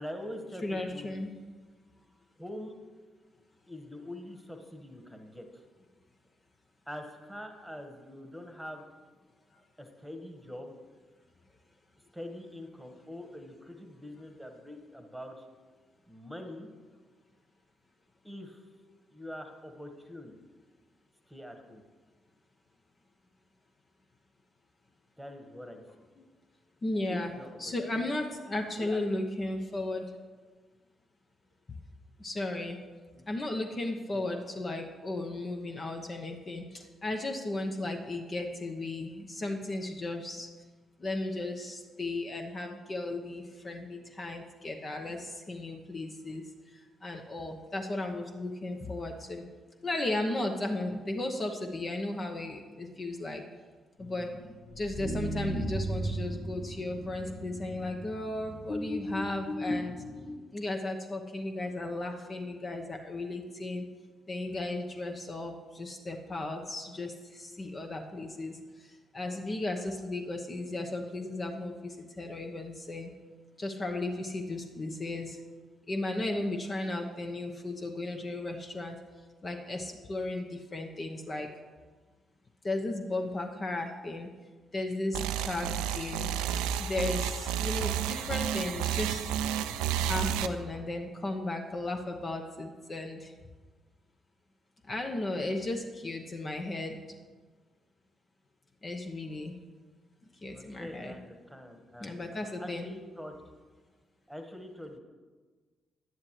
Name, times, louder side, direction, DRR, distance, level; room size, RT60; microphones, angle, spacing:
voice 1, 0.0-1.2 2.4-2.8 3.7-5.6 6.9-8.9 9.8-10.7 12.1-15.5 16.1-16.7 18.2-18.6 19.1-20.3 21.3-21.8 25.2-26.1 27.1-28.0 28.8-29.2 33.1-33.3 34.1-34.3 100.5-103.3 104.3-105.0, left 1 dB, 5° right, 5 dB, 1.5 m, -44 dB
voice 2, 0.6-1.3 26.8-27.3 27.6-30.0 32.2-32.8 33.3-40.5 41.0-46.4 47.0-49.4 49.8-53.4 54.0-54.3 54.8-59.9 60.5-63.8 64.3-68.6 68.8-73.1 73.6-75.4 75.9-79.0 79.4-81.5 82.6-84.3 84.7-86.3 86.8-89.2 90.1-93.3 94.9-97.0 98.8-99.6 100.4-101.1 102.0-102.9, left 2 dB, 40° left, 4 dB, 0.9 m, -35 dB
sound 1, 54.0-60.3, equal, 55° left, 1.3 m, -36 dB
sound 2, 85.1-90.5, right 9 dB, 80° right, 0.4 m, -31 dB
11.0 x 9.5 x 3.2 m, 1.4 s
hypercardioid pair, 45°, 0 cm